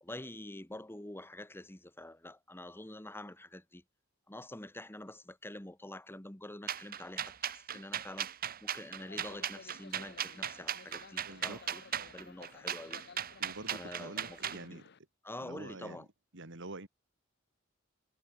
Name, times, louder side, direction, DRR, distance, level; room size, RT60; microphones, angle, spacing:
voice 1, 0.0-3.8 4.3-8.3 8.6-11.8 12.1-13.0 13.7-14.8 15.2-16.1, left 1 dB, 10° left, 1.5 m, -47 dB
sound 1, 6.7-14.6, right 9 dB, 45° right, 1.0 m, -37 dB
sound 2, 9.0-15.0, left 5 dB, 55° left, 0.9 m, -55 dB
voice 2, 11.2-11.6 13.4-14.9 15.4-16.1 16.3-16.9, right 2 dB, 65° right, 2.9 m, -47 dB
head